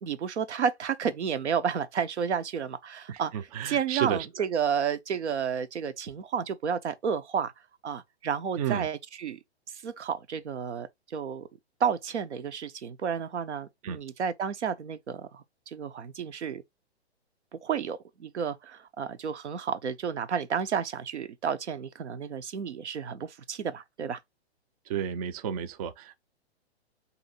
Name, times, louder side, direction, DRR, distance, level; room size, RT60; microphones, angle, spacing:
voice 1, 0.0-3.3 3.6-7.5 7.8-9.4 9.7-11.5 11.8-16.6 17.6-24.2, right 7 dB, 85° right, 0.6 m, -31 dB
voice 2, 3.1-4.2 8.6-8.9 13.8-14.0 24.9-26.2, right 9 dB, 35° right, 0.4 m, -31 dB
2.7 x 2.5 x 4.1 m
hypercardioid pair, 125°, 33 cm